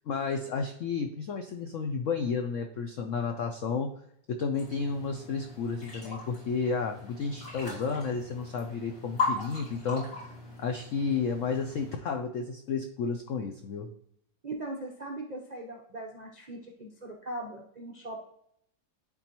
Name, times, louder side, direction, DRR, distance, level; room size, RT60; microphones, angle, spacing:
voice 1, 0.1-3.9 4.3-10.3 10.6-13.9, left 5 dB, 80° left, 5 dB, 0.7 m, -32 dB
sound 1, 4.5-12.0, left 3 dB, 60° left, 3.2 m, -38 dB
voice 2, 14.4-18.2, right 2 dB, 60° right, 0 dB, 0.4 m, -40 dB
11.0 x 3.8 x 2.9 m, 0.71 s
omnidirectional pair, 2.0 m